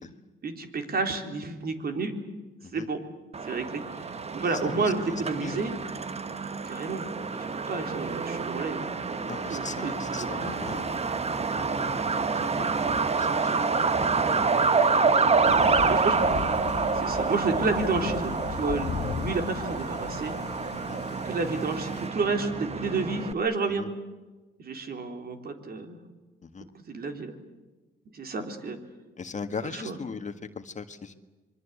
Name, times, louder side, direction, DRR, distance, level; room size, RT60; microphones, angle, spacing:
voice 1, 0.4-2.1 2.7-3.0 3.4-5.7 6.7-7.1 7.5-10.6 13.5-13.7 15.9-16.2 16.9-18.3 18.6-18.9 19.2-20.3 21.2-23.9 24.6-26.0 26.9-27.3 28.1-28.8 29.7-29.9, right 4 dB, 50° right, 5 dB, 3.9 m, -30 dB
Truck, 3.3-23.3, right 4 dB, 30° right, 1.3 m, -28 dB
voice 2, 4.5-5.6 9.3-12.7 13.1-14.4 15.3-16.0 20.7-21.0 23.8-23.9 26.4-26.7 29.2-31.1, left 5 dB, 35° left, 8 dB, 1.7 m, -40 dB
Thunder / Rain, 15.4-22.1, left 6 dB, 55° left, 1.8 m, -37 dB
26.5 x 23.5 x 8.4 m, 1.2 s
cardioid pair, 90°, 20 cm